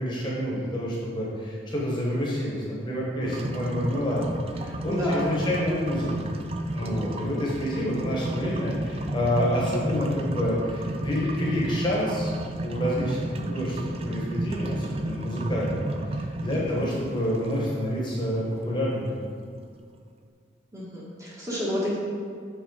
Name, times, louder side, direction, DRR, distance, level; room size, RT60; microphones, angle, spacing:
voice 1, 0.0-6.1 6.7-12.3 12.6-13.8 14.0-15.8 16.1-19.1, equal, 25° left, -5 dB, 1.1 m, -28 dB
sound 1, 3.2-19.1, right 1 dB, 30° right, 0.4 m, -33 dB
voice 2, 4.9-5.3 6.8-7.1 16.5-16.8 20.7-22.0, equal, 15° right, -6 dB, 1.3 m, -30 dB
7.2 x 4.2 x 4.7 m, 2.2 s
head